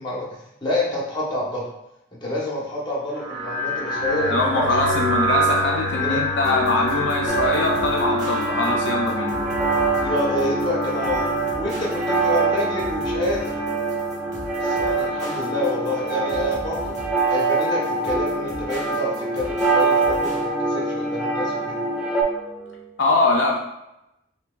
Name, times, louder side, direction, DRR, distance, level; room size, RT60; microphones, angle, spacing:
voice 1, 0.0-1.7 2.1-4.9 6.0-6.2 10.0-11.3 11.6-13.5 14.6-17.0 17.3-21.8, left 1 dB, 25° left, -4 dB, 1.0 m, -28 dB
sound 1, 3.1-22.8, right 1 dB, 65° right, 1.1 m, -29 dB
voice 2, 4.3-9.3 23.0-23.6, left 3 dB, 70° left, -1 dB, 0.4 m, -22 dB
sound 2, 6.4-20.4, equal, 40° right, 1.1 m, -40 dB
sound 3, 7.3-22.2, right 3 dB, 5° right, 0.4 m, -24 dB
5.5 x 2.2 x 2.3 m, 0.87 s
head